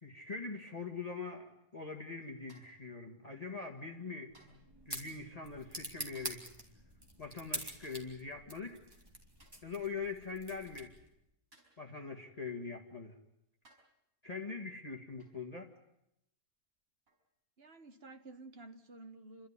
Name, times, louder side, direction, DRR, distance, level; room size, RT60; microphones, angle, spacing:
voice 1, 0.0-4.3 4.8-6.5 7.2-8.8 9.6-10.9 11.8-13.1 14.2-15.7, left 4 dB, 25° left, 1.9 m, -43 dB
sound 1, 2.5-2.9 4.3-4.7 6.1-6.6 7.8-8.2 9.4-9.7 11.5-11.9 12.9-13.0 13.6-14.0 15.2-15.5 17.1-17.3, right 2 dB, 70° right, 6.3 m, -65 dB
sound 2, 4.3-11.2, right 1 dB, 15° right, 3.1 m, -46 dB
voice 2, 17.6-19.5, right 2 dB, 45° right, 1.6 m, -52 dB
30.0 x 13.0 x 9.8 m
omnidirectional pair, 1.5 m